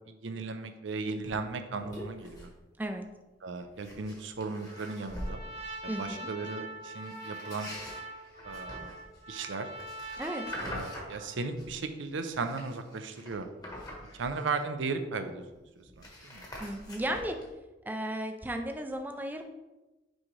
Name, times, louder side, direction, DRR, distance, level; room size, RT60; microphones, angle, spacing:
voice 1, 0.1-2.5 3.4-5.4 5.8-7.7 8.4-8.9 9.3-9.7 10.6-13.5 14.1-15.4 15.8-16.5, right 4 dB, 80° right, 8 dB, 0.6 m, -36 dB
voice 2, 1.1-1.5 2.8-3.1 5.9-6.3 10.2-10.4 16.6-17.4 17.9-19.4, right 1 dB, 10° right, 5 dB, 0.4 m, -35 dB
sound 1, 1.2-1.4 1.8-2.5 2.8-3.1 3.6-5.4 7.0-11.8 12.2-14.9 15.2-15.3 15.5-17.5, left 1 dB, 20° left, 1.2 m, -45 dB
Trumpet, 4.7-11.5, right 1 dB, 35° right, 0.7 m, -43 dB
6.2 x 4.8 x 3.2 m, 1.1 s
head